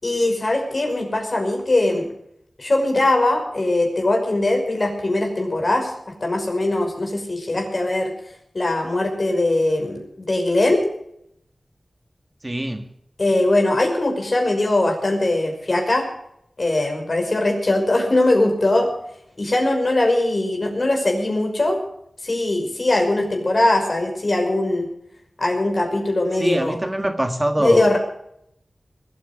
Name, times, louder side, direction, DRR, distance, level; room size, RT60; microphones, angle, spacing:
voice 1, 0.0-2.1 2.6-5.9 6.2-8.1 8.5-10.8 13.2-16.1 16.6-18.9 19.4-21.8 22.2-24.9 25.4-26.8 27.6-28.0, left 2 dB, 45° left, 2 dB, 5.6 m, -20 dB
voice 2, 12.4-12.8 26.4-28.0, right 1 dB, 20° right, 7 dB, 1.7 m, -24 dB
21.5 x 9.2 x 6.9 m, 0.73 s
wide cardioid pair, 75°, 0 cm